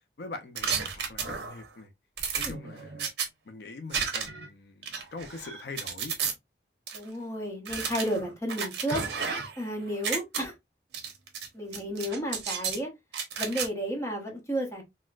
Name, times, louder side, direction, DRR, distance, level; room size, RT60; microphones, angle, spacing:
voice 1, 0.2-1.9 2.4-3.1 3.5-6.1, left 3 dB, 70° left, 0.5 m, -43 dB
sound 1, 0.6-1.7 2.2-3.3 3.9-4.5 4.8-6.3 6.9-7.0 7.6-9.6 9.9-10.4 10.9-11.5 11.7-12.8 13.1-13.7, right 6 dB, 75° right, 0.8 m, -32 dB
voice 2, 6.9-9.3 9.6-10.5 11.5-12.9 13.4-14.8, equal, 15° left, 0.8 m, -32 dB
4.1 x 2.1 x 2.3 m
head